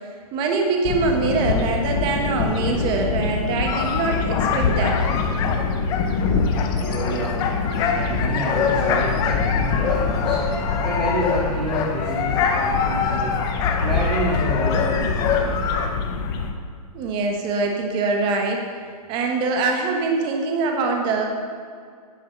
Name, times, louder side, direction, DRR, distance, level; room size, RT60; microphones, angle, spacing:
voice 1, 0.3-5.0 16.9-18.7 19.1-21.3, right 3 dB, 25° right, 2 dB, 1.3 m, -23 dB
sound 1, 0.8-16.5, left 4 dB, 35° left, 1.1 m, -25 dB
sound 2, 3.6-15.9, left 6 dB, 20° left, 0.7 m, -25 dB
voice 2, 6.7-7.4 7.8-10.4 10.8-13.3 13.8-15.5, right 1 dB, 85° right, -6 dB, 2.7 m, -28 dB
10.5 x 8.4 x 5.9 m, 2.1 s
hypercardioid pair, 155°, 20 cm